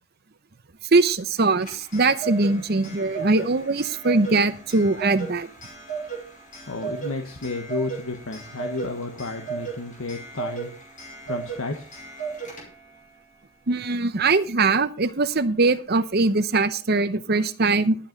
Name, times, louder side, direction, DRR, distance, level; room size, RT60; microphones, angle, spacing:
voice 1, 0.9-5.5 13.7-18.0, right 3 dB, 45° right, 13 dB, 0.8 m, -21 dB
Clock, 1.4-13.0, right 6 dB, 35° left, 5.3 m, -36 dB
voice 2, 6.7-10.7 11.3-11.9, left 3 dB, 70° left, 5 dB, 1.3 m, -32 dB
11.5 x 8.9 x 5.2 m, 0.39 s
head